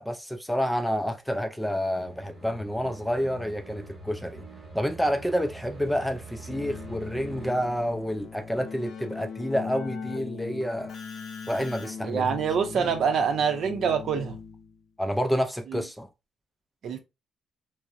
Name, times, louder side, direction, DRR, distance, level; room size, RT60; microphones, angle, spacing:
voice 1, 0.0-4.5 4.7-10.9 11.5-12.3 12.8-12.9 15.0-16.1, equal, 5° left, 0.4 m, -29 dB
sound 1, 2.0-7.5, right 2 dB, 25° right, 1.1 m, -44 dB
Keyboard (musical), 6.5-14.8, left 6 dB, 65° left, 0.5 m, -40 dB
voice 2, 12.0-14.4 15.7-15.8 16.8-17.0, right 6 dB, 65° right, 0.6 m, -25 dB
2.7 x 2.0 x 2.4 m
cardioid pair, 90°, 0 cm